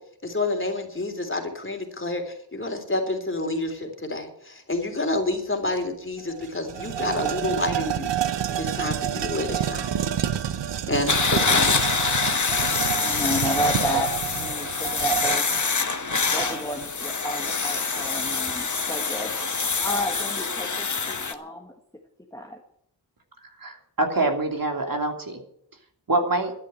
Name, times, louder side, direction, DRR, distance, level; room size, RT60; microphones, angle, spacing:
voice 1, 0.2-8.1 8.5-10.0 10.9-11.8, left 2 dB, 30° left, 4 dB, 3.3 m, -29 dB
sound 1, 5.8-5.9 6.2-16.9, right 10 dB, 80° right, 0.8 m, -29 dB
sound 2, 11.1-21.3, left 4 dB, 45° left, 1.4 m, -25 dB
voice 2, 13.0-15.5 16.3-19.3 19.8-21.7 22.3-22.6, left 1 dB, 10° left, 2 dB, 1.7 m, -31 dB
voice 3, 23.6-25.4 26.1-26.5, right 2 dB, 55° right, 3 dB, 3.0 m, -25 dB
12.5 x 10.5 x 7.7 m, 0.69 s
wide cardioid pair, 70°, 42 cm